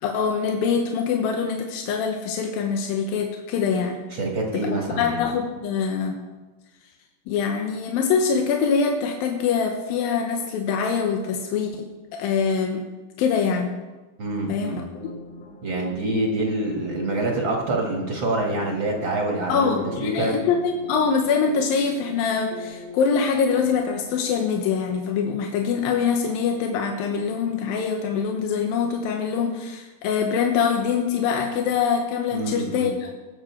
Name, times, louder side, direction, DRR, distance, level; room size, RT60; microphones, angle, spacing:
voice 1, 0.0-4.0 4.5-6.2 7.3-12.8 13.2-13.7 14.5-14.8 19.5-33.1, left 6 dB, 90° left, 2 dB, 2.8 m, -24 dB
voice 2, 4.1-5.3 14.2-14.8 15.6-19.7 20.0-20.4 32.3-32.9, right 2 dB, 45° right, 0 dB, 1.8 m, -26 dB
sound 1, 14.9-24.2, left 3 dB, 55° left, 2.5 m, -41 dB
21.0 x 7.8 x 4.5 m, 1.2 s
omnidirectional pair, 4.0 m